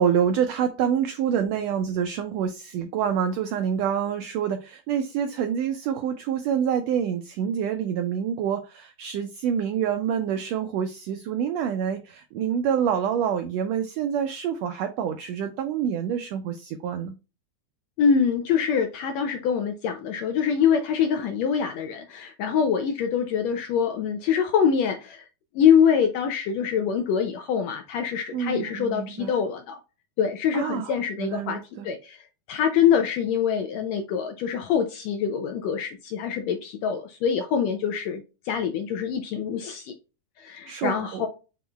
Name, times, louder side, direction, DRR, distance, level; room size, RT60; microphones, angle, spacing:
voice 1, 0.0-17.1 28.3-29.4 30.5-31.9 40.7-41.3, right 8 dB, 85° right, 1.5 m, -27 dB
voice 2, 18.0-25.2 25.5-29.8 30.2-31.6 31.8-32.2 32.5-39.9 40.4-41.3, left 7 dB, 80° left, 1.6 m, -24 dB
7.1 x 3.0 x 2.3 m
omnidirectional pair, 3.6 m